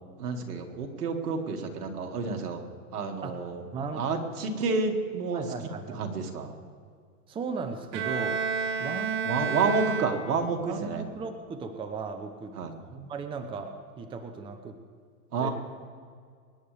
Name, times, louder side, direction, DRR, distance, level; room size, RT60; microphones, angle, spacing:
voice 1, 0.2-2.6 2.9-3.6 3.9-5.4 5.9-6.5 9.3-11.0 12.5-12.7 15.3-15.5, right 4 dB, 80° right, 4 dB, 2.2 m, -29 dB
voice 2, 3.7-4.0 5.3-6.0 7.3-8.4 8.8-9.7 10.1-14.8 15.4-15.5, right 4 dB, 10° right, 7 dB, 0.7 m, -37 dB
Bowed string instrument, 7.9-10.6, right 5 dB, 40° right, 1.4 m, -31 dB
25.0 x 10.5 x 3.4 m, 2.1 s
hypercardioid pair, 130°, 46 cm